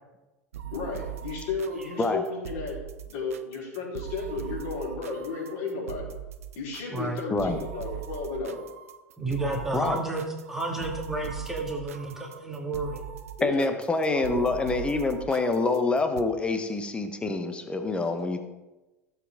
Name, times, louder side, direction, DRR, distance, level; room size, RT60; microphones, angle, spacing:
sound 1, 0.5-16.2, right 10 dB, 65° right, 0.7 m, -40 dB
voice 1, 0.7-2.7 3.0-6.1 6.5-8.6 13.4-13.7 14.1-14.4, left 4 dB, 50° left, -4 dB, 4.7 m, -33 dB
voice 2, 6.9-7.2 9.2-13.0, right 2 dB, 5° right, -1 dB, 2.6 m, -31 dB
voice 3, 13.4-18.4, left 3 dB, 15° left, 7 dB, 1.2 m, -26 dB
16.0 x 7.6 x 3.9 m, 1.1 s
figure-of-eight pair, 85°, 8 cm